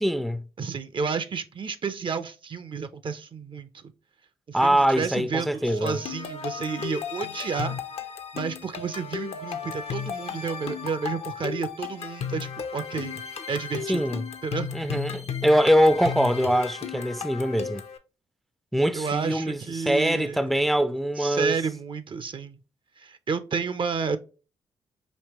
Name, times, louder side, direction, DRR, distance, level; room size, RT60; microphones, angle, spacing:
voice 1, 0.0-0.4 4.5-6.0 13.9-14.2 14.7-17.8 18.7-21.6, equal, ahead, 0.4 m, -23 dB
voice 2, 0.6-3.9 4.5-7.8 8.3-13.2 13.5-14.0 14.4-14.8 18.9-20.5 21.2-22.6 23.0-24.2, right 5 dB, 45° right, 0.6 m, -31 dB
sound 1, 5.7-18.0, left 7 dB, 60° left, 0.6 m, -35 dB
5.3 x 2.8 x 2.9 m
hypercardioid pair, 45°, 12 cm